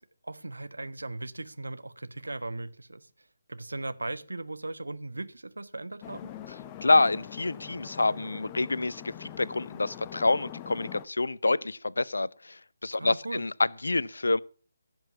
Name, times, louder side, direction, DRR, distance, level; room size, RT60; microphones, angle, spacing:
voice 1, 0.2-3.1 3.5-6.3 13.0-13.4, right 2 dB, 70° right, 1.3 m, -38 dB
sound 1, 6.0-11.0, left 11 dB, 20° left, 0.8 m, -43 dB
voice 2, 6.8-14.4, left 2 dB, 65° left, 0.7 m, -27 dB
16.5 x 7.9 x 7.1 m
figure-of-eight pair, 145°, 0 cm